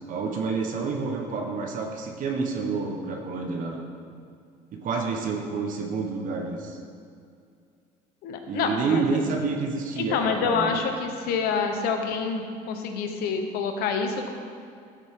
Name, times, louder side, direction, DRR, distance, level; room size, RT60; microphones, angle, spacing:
voice 1, 0.1-3.9 4.7-6.8 8.4-10.8, right 4 dB, 60° right, 2 dB, 1.2 m, -29 dB
voice 2, 8.2-9.2 10.0-14.3, left 5 dB, 75° left, 5 dB, 1.1 m, -27 dB
12.5 x 7.5 x 3.7 m, 2.4 s
cardioid pair, 100°, 16 cm